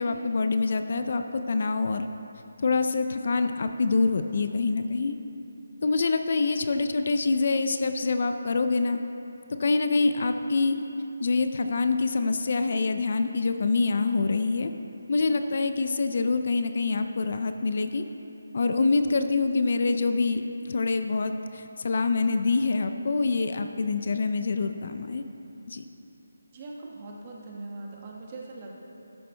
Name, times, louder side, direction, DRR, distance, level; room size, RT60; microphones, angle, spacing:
voice 1, 0.0-2.1 2.6-5.1 5.8-9.0 9.6-10.8 11.2-14.7 15.1-18.0 18.5-25.2 25.7-25.8, left 3 dB, 50° left, 8 dB, 0.4 m, -25 dB
voice 2, 26.5-28.7, right 2 dB, 30° right, -2 dB, 1.3 m, -41 dB
13.0 x 11.5 x 2.2 m, 2.8 s
figure-of-eight pair, 160°, 0 cm